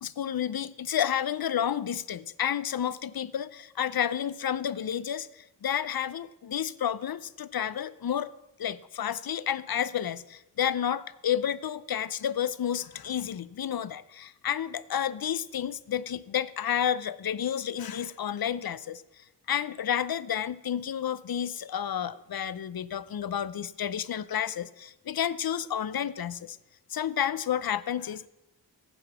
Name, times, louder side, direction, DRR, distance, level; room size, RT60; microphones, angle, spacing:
voice 1, 0.0-8.3 8.6-19.0 19.5-26.6 26.9-28.3, left 9 dB, 55° left, 17 dB, 0.5 m, -31 dB
13.5 x 7.9 x 6.0 m, 0.95 s
wide cardioid pair, 70°, 43 cm